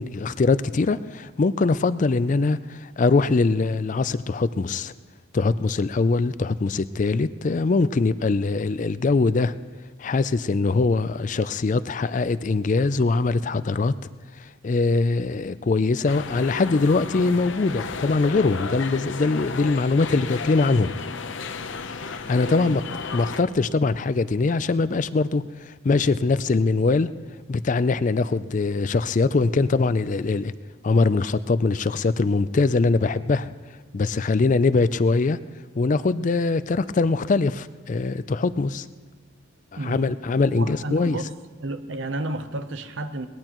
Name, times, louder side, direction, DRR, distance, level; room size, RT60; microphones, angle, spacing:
voice 1, 0.0-4.9 5.3-9.5 10.0-13.9 14.6-20.9 22.0-22.8 23.1-27.1 27.5-30.5 30.8-33.5 33.9-35.4 35.8-38.9 39.8-41.2, left 3 dB, 40° left, 14 dB, 0.4 m, -22 dB
sound 1, 16.1-23.4, left 4 dB, 70° left, 0.8 m, -33 dB
voice 2, 22.5-22.8 39.7-41.3 41.6-43.3, right 2 dB, 70° right, 10 dB, 0.8 m, -32 dB
22.0 x 18.5 x 3.0 m, 1.3 s
head